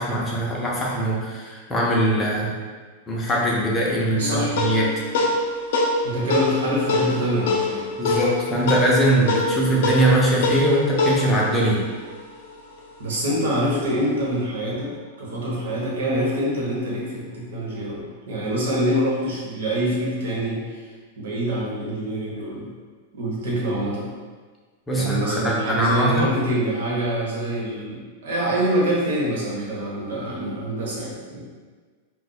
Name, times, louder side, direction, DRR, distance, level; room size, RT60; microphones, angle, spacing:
voice 1, 0.0-2.5 3.1-4.9 8.0-11.8 24.9-26.3, right 1 dB, 10° left, -4 dB, 0.5 m, -21 dB
sound 1, 4.2-12.9, left 2 dB, 60° left, 0.5 m, -25 dB
voice 2, 4.2-4.6 6.0-7.8 13.0-22.7 23.1-24.1 24.9-31.5, equal, 80° right, -4 dB, 1.1 m, -25 dB
2.5 x 2.2 x 4.0 m, 1.5 s
supercardioid pair, 160°, 0 cm